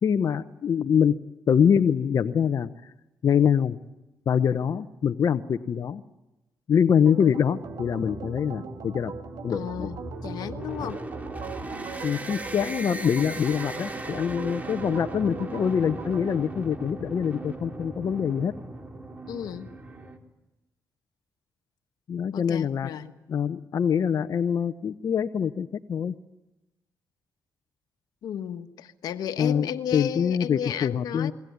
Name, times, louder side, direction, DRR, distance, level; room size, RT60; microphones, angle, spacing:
voice 1, 0.0-1.1 1.5-2.9 3.2-3.8 4.3-6.0 6.7-9.1 9.4-9.9 10.8-10.9 12.0-18.5 22.1-22.9 23.3-26.1 29.4-31.3, left 7 dB, 55° left, 1.0 m, -24 dB
Organ, 7.1-16.4, right 6 dB, 80° right, 2.7 m, -40 dB
sound 1, 7.6-20.2, right 2 dB, 25° right, 3.8 m, -38 dB
voice 2, 9.5-11.0 19.3-19.7 22.3-23.2 28.2-31.3, left 9 dB, 80° left, 1.5 m, -34 dB
28.5 x 21.5 x 9.6 m
cardioid pair, 85°, 7 cm